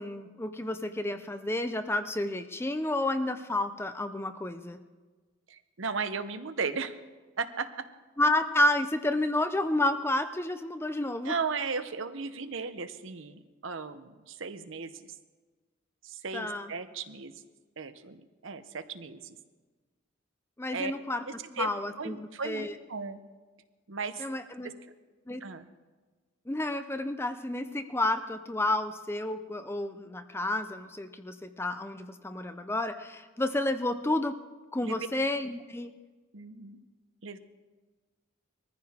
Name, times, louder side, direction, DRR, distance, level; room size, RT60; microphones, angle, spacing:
voice 1, 0.0-4.8 8.2-11.3 16.3-16.7 20.6-21.2 21.6-22.2 22.4-22.7 24.2-24.7 25.3-25.4 26.5-34.4 34.7-35.9, left 1 dB, 10° left, 9 dB, 0.5 m, -30 dB
voice 2, 5.5-7.0 7.4-7.9 11.2-15.2 16.0-17.4 17.8-19.4 20.7-20.9 21.2-21.7 22.0-23.2 23.9-24.3 24.6-24.7 25.4-25.7 34.8-35.0 36.3-36.8 37.2-37.4, right 5 dB, 60° right, 10 dB, 0.8 m, -36 dB
21.5 x 14.5 x 3.6 m, 1.3 s
head